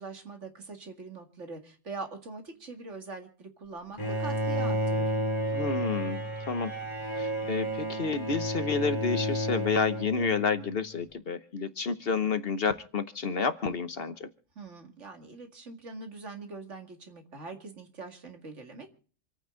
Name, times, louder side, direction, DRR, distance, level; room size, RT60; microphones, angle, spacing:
voice 1, 0.0-5.1 14.6-18.9, right 3 dB, 70° right, 5 dB, 2.5 m, -43 dB
Bowed string instrument, 4.0-10.8, right 1 dB, 20° left, 3.6 m, -31 dB
voice 2, 5.5-6.7 7.2-14.3, left 5 dB, 55° left, 12 dB, 1.1 m, -30 dB
27.0 x 9.2 x 3.8 m, 0.42 s
omnidirectional pair, 1.3 m